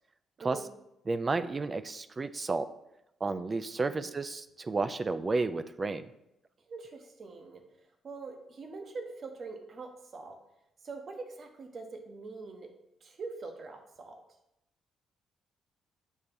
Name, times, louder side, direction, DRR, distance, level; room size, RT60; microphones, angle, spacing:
voice 1, 0.4-0.7 3.8-4.1 6.7-10.4 10.8-12.7 13.0-14.2, right 3 dB, 50° right, 5 dB, 1.0 m, -44 dB
voice 2, 1.1-2.7 3.2-6.0, right 3 dB, 30° right, 12 dB, 0.3 m, -31 dB
6.4 x 2.9 x 5.2 m, 0.84 s
cardioid pair, 90°, 0 cm